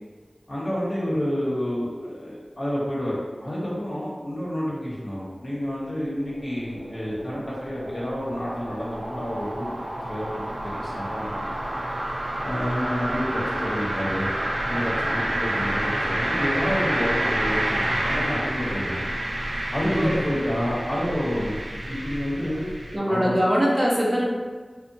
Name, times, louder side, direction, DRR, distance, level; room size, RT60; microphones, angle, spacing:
voice 1, 0.5-9.7 10.0-11.8 12.4-14.3 14.7-19.1 19.7-22.7 23.1-23.4, equal, 60° left, -7 dB, 1.0 m, -29 dB
sound 1, 5.4-23.0, right 1 dB, 70° right, 0.3 m, -29 dB
voice 2, 19.9-20.3 22.9-24.2, equal, 25° right, -4 dB, 0.6 m, -22 dB
2.7 x 2.1 x 2.6 m, 1.4 s
wide cardioid pair, 45°, 0 cm